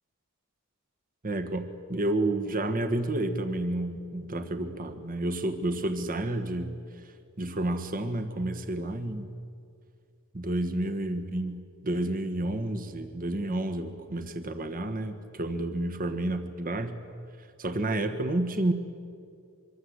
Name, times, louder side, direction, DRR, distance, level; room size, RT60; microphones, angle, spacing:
voice 1, 1.2-6.7 7.4-9.3 10.3-17.0 17.6-18.7, right 1 dB, 40° right, 8 dB, 1.5 m, -30 dB
24.5 x 24.0 x 8.1 m, 2.3 s
head